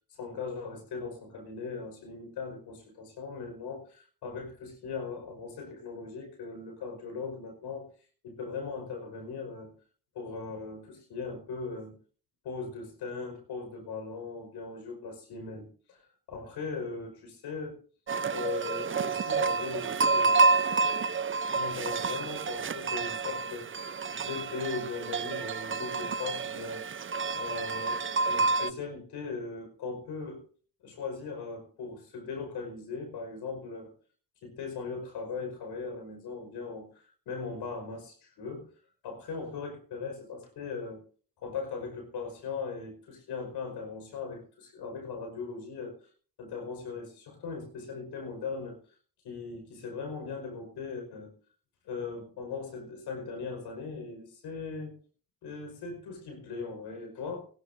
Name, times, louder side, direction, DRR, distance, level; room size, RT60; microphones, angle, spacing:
voice 1, 0.2-7.9 8.2-9.7 10.1-12.0 12.4-17.8 18.3-20.5 21.6-23.9 24.2-26.8 27.3-30.4 30.8-33.9 34.4-38.7 39.0-41.0 41.4-46.1 46.4-48.9 49.2-51.3 51.8-54.9 55.4-57.5, left 4 dB, 85° left, 5 dB, 5.3 m, -39 dB
sound 1, 18.1-28.7, right 4 dB, 30° right, 0.7 m, -29 dB
19.5 x 16.0 x 2.7 m, 0.41 s
supercardioid pair, 55°, 39 cm